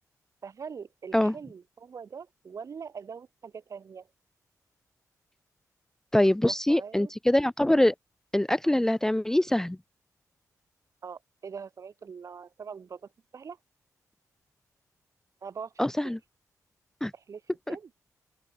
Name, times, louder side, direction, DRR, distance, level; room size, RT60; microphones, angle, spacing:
voice 1, 0.4-4.1 6.4-7.1 8.6-8.8 11.0-13.6 15.4-16.2 17.1-17.4 17.7-17.9, right 6 dB, 55° right, 4.6 m, -43 dB
voice 2, 6.1-7.9 8.3-9.8 15.8-16.2 17.0-17.1 17.7-17.8, left 1 dB, 5° left, 0.5 m, -24 dB
open air
cardioid pair, 80°, 7 cm